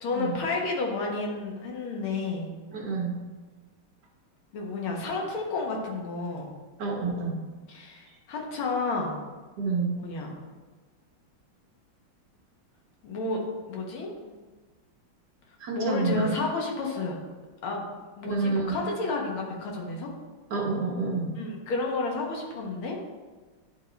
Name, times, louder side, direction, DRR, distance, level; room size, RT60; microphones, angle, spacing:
voice 1, 0.0-2.5 4.5-6.5 7.7-9.2 10.0-10.3 13.0-14.4 15.7-17.2 17.6-17.9 18.2-20.1 21.3-23.0, left 3 dB, 80° left, 0 dB, 2.0 m, -31 dB
voice 2, 2.7-3.2 6.8-7.4 9.6-9.9 15.6-16.3 18.2-18.7 20.5-21.3, right 3 dB, 60° right, -1 dB, 1.4 m, -28 dB
9.9 x 3.6 x 4.0 m, 1.3 s
omnidirectional pair, 2.3 m